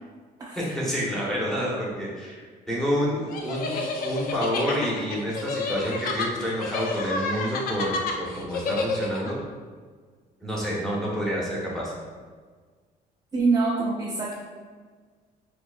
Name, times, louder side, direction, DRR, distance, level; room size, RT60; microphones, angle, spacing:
voice 1, 0.5-9.4 10.4-11.9, equal, 5° left, -6 dB, 1.1 m, -28 dB
sound 1, 3.3-9.3, left 3 dB, 60° left, 0.5 m, -30 dB
voice 2, 13.3-14.3, right 3 dB, 20° right, -4 dB, 0.4 m, -24 dB
4.7 x 2.3 x 2.4 m, 1.5 s
cardioid pair, 110°, 17 cm